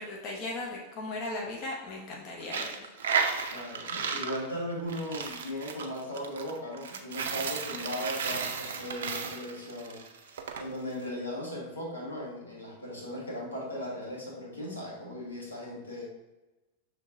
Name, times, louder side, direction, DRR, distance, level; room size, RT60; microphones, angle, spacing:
voice 1, 0.0-2.9, left 2 dB, 40° left, -1 dB, 0.8 m, -37 dB
Coin (dropping), 2.4-10.6, right 6 dB, 60° right, 0.5 m, -34 dB
voice 2, 3.5-10.0 10.6-16.1, equal, 75° left, -3 dB, 1.2 m, -37 dB
6.2 x 3.2 x 2.6 m, 1.1 s
figure-of-eight pair, 90°, 0 cm